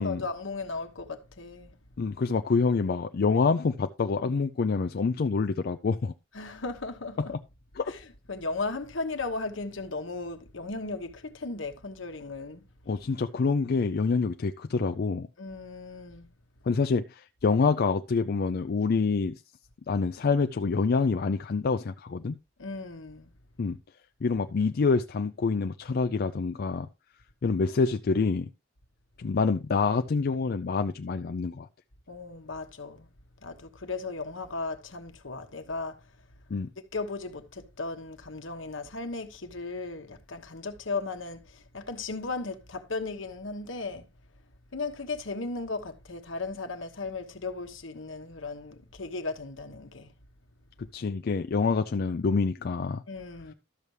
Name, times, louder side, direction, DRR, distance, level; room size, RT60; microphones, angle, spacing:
voice 1, 0.0-1.8 6.3-7.3 7.9-12.6 15.4-16.3 22.6-23.3 32.1-33.1 33.4-36.0 36.9-44.1 44.7-50.1 53.1-53.5, left 3 dB, 75° left, 1.2 m, -36 dB
voice 2, 2.0-6.1 7.3-7.4 7.8-7.9 12.9-15.3 16.7-19.4 19.9-22.3 23.6-23.8 24.2-26.9 27.4-28.5 29.2-31.7 36.5-36.7 50.8-53.0, left 4 dB, 50° left, 0.4 m, -26 dB
12.5 x 6.8 x 3.2 m
head